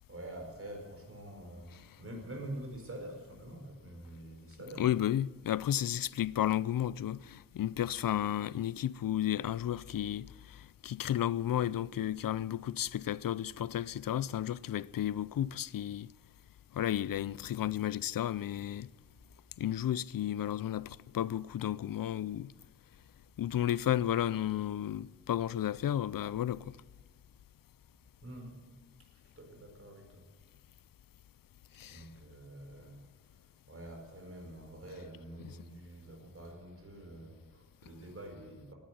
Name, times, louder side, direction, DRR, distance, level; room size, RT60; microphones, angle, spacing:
voice 1, 0.1-4.9 28.2-28.6 29.1-30.2 31.9-33.0 33.3-38.7, right 1 dB, 40° right, 4.7 m, -46 dB
voice 2, 4.8-16.1 16.7-18.9 19.6-22.5 23.4-26.8 31.8-32.0 35.4-35.5, left 11 dB, 75° left, 0.5 m, -33 dB
18.0 x 10.5 x 7.6 m
wide cardioid pair, 115°, 34 cm